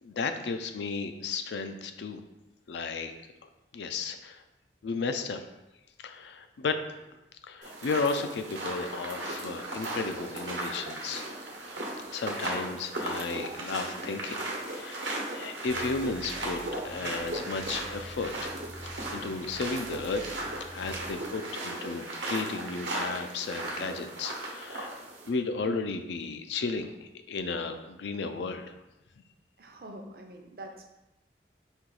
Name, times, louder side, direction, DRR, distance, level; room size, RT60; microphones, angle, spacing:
voice 1, 0.0-2.2 2.7-3.1 3.7-4.4 4.8-5.4 6.0-6.8 7.5-11.3 12.1-14.4 14.7-15.1 15.3-18.6 19.1-20.2 20.7-24.9 25.3-28.7, left 4 dB, 80° left, 8 dB, 0.4 m, -34 dB
sound 1, 7.6-25.3, right 2 dB, 90° right, 1.0 m, -36 dB
sound 2, 15.7-21.2, equal, 5° right, 0.4 m, -47 dB
voice 2, 29.6-30.9, right 1 dB, 55° right, 3 dB, 0.6 m, -45 dB
4.4 x 2.9 x 3.8 m, 0.94 s
head